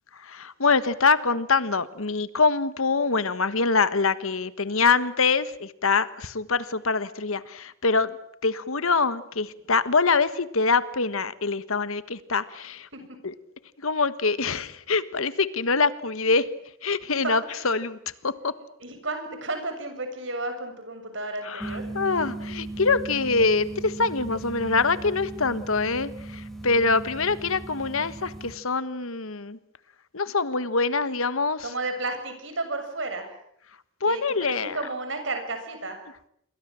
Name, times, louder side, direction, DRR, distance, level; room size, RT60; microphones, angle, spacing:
voice 1, 0.1-12.9 13.2-13.3 13.8-16.5 16.8-18.0 18.2-18.5 21.4-29.6 30.1-31.7 34.0-34.8, left 4 dB, 75° left, 14 dB, 1.4 m, -24 dB
voice 2, 18.8-21.9 31.6-33.4 34.0-36.0, right 2 dB, 60° right, 6 dB, 7.3 m, -32 dB
sound 1, 21.6-28.5, right 2 dB, ahead, 3.1 m, -37 dB
28.0 x 23.5 x 7.7 m, 0.74 s
head